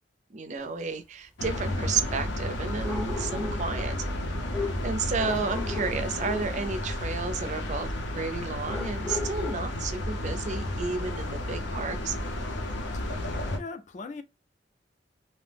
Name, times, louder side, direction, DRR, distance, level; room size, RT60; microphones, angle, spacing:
voice 1, 0.3-4.1 4.8-12.2, right 4 dB, 40° right, 0.4 m, -32 dB
sound 1, 0.6-0.7 2.8-3.7 4.5-6.6 8.7-9.5, left 3 dB, 15° left, 0.7 m, -36 dB
sound 2, 1.4-13.6, left 1 dB, 80° left, 0.6 m, -32 dB
voice 2, 13.6-14.2, left 4 dB, 40° left, 0.4 m, -39 dB
2.6 x 2.0 x 3.3 m
head